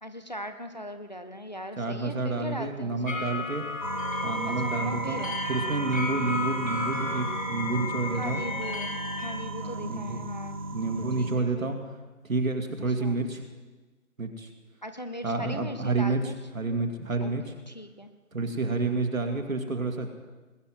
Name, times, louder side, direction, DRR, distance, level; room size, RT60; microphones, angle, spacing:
voice 1, 0.0-3.2 4.5-5.4 8.1-10.6 11.2-11.8 13.0-13.3 14.8-16.3 17.2-18.1, equal, 30° left, 8 dB, 0.7 m, -39 dB
voice 2, 1.8-3.6 4.2-8.4 9.6-10.2 10.7-11.8 12.2-13.5 14.2-14.5 15.2-17.4 18.3-20.1, right 3 dB, 65° right, 4 dB, 2.2 m, -29 dB
sound 1, 3.1-9.3, left 3 dB, 65° left, 3.8 m, -34 dB
sound 2, 3.8-11.4, right 3 dB, 25° right, 0.8 m, -34 dB
20.5 x 7.0 x 7.8 m, 1.3 s
figure-of-eight pair, 160°, 43 cm